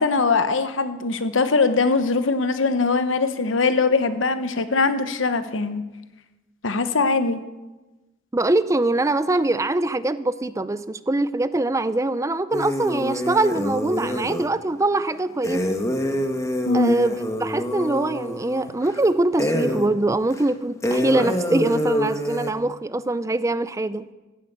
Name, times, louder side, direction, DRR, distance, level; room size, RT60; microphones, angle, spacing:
voice 1, 0.0-5.8 6.6-7.4 16.7-17.0, left 4 dB, 80° left, 1.0 m, -21 dB
voice 2, 8.3-15.8 16.7-24.1, right 2 dB, 15° right, 0.5 m, -23 dB
sound 1, 12.5-14.5 15.4-19.0 19.4-19.9 20.3-20.4 20.8-22.5, left 1 dB, 15° left, 1.3 m, -26 dB
14.0 x 11.5 x 8.0 m
head